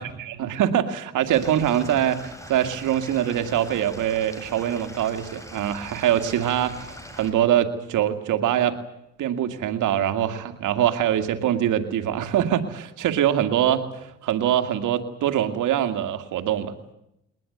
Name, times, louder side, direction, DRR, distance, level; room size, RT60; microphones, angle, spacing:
voice 1, 0.3-8.8 9.2-16.7, right 10 dB, 80° right, 8 dB, 2.2 m, -23 dB
Stream / Liquid, 1.3-7.3, equal, 10° left, 5.4 m, -42 dB
22.0 x 19.5 x 9.4 m, 0.83 s
cardioid pair, 90°, 30 cm